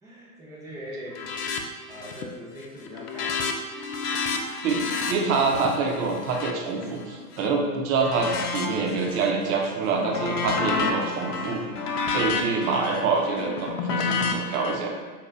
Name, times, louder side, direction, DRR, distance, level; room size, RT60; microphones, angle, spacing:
voice 1, 0.0-1.3 1.9-3.5, equal, 10° right, -6 dB, 0.3 m, -41 dB
sound 1, 1.1-1.6 1.9-2.3 2.6-7.5 8.0-9.3 9.7-14.8, left 4 dB, 80° left, 0.6 m, -30 dB
voice 2, 4.6-11.6 12.1-14.9, right 4 dB, 65° right, 1 dB, 0.7 m, -26 dB
3.9 x 2.3 x 2.2 m, 1.4 s
hypercardioid pair, 110°, 47 cm